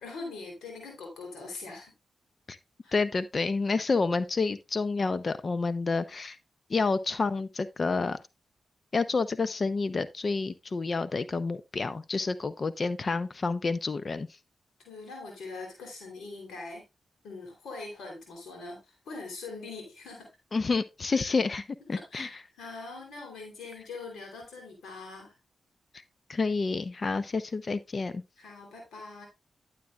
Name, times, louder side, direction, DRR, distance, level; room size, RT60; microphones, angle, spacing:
voice 1, 0.0-1.9 2.8-3.0 14.8-16.8 17.2-20.3 21.1-21.3 21.9-25.4 28.4-29.3, left 3 dB, 85° left, 3.4 m, -42 dB
voice 2, 2.9-6.4 6.7-8.2 8.9-14.3 20.5-21.6 21.9-22.3 26.3-28.2, left 4 dB, 50° left, 0.7 m, -29 dB
11.5 x 7.5 x 2.4 m
supercardioid pair, 40°, 0 cm